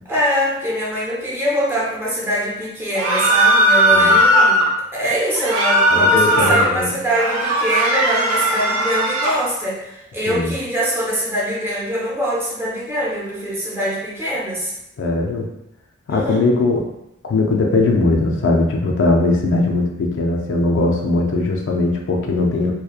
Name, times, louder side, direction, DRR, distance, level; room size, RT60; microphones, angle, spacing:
voice 1, 0.1-14.7 16.1-16.5, equal, 10° right, -6 dB, 0.5 m, -23 dB
sound 1, 2.9-4.7 5.3-6.7 7.1-9.4, equal, 90° right, 0.6 m, -16 dB
voice 2, 5.9-7.0 10.3-10.5 15.0-15.5 16.1-16.8 17.2-22.7, left 2 dB, 60° left, 1 dB, 0.4 m, -19 dB
2.8 x 2.1 x 2.3 m, 0.85 s
head